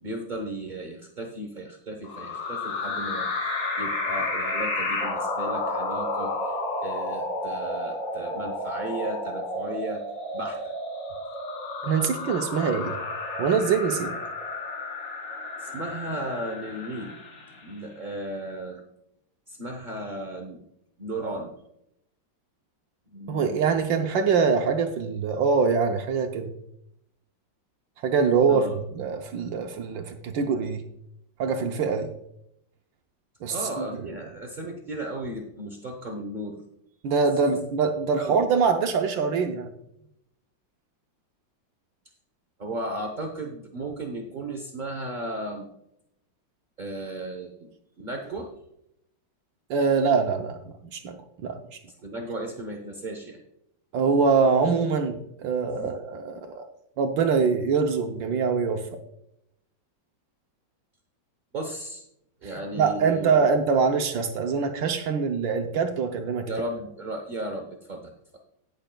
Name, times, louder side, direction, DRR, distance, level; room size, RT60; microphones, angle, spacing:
voice 1, 0.0-3.3 3.8-10.0 10.3-10.6 15.6-17.2 17.6-18.8 19.5-20.6 21.0-21.5 23.1-23.8 28.5-28.8 33.5-36.6 38.2-38.4 42.6-45.7 46.8-47.7 48.0-48.5 52.0-53.4 55.7-55.9 61.5-62.0 62.4-63.5 66.4-68.1, right 1 dB, 45° right, 3 dB, 0.6 m, -35 dB
sound 1, 2.0-17.7, left 2 dB, 50° left, 2.2 m, -31 dB
voice 2, 11.8-12.9 13.4-14.1 23.3-26.5 28.0-30.8 31.4-32.1 33.4-33.9 37.0-39.7 49.7-50.6 50.9-51.8 53.9-55.2 55.4-56.7 57.0-58.8 62.7-66.5, right 5 dB, 75° right, 5 dB, 1.4 m, -24 dB
19.0 x 6.4 x 2.3 m, 0.78 s
omnidirectional pair, 2.1 m